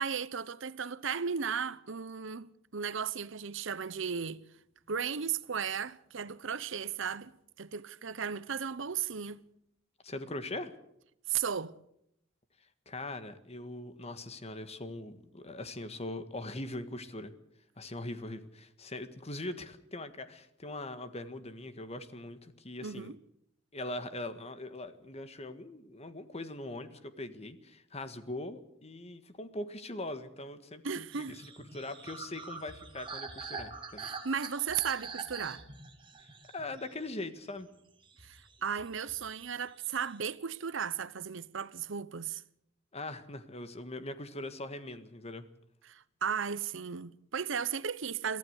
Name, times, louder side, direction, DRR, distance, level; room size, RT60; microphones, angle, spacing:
voice 1, 0.0-4.4 4.9-7.3 7.6-9.4 11.3-11.8 22.8-23.2 30.8-31.4 34.0-35.6 38.2-42.4 45.9-48.4, right 7 dB, 70° right, 0.8 m, -35 dB
voice 2, 10.0-10.7 12.8-17.3 17.8-23.1 23.7-34.1 36.5-37.7 42.9-45.5, left 2 dB, 35° left, 1.6 m, -41 dB
sound 1, 31.1-37.6 38.0-39.4 39.7-40.3, right 4 dB, 25° right, 2.2 m, -45 dB
23.5 x 15.0 x 8.1 m
head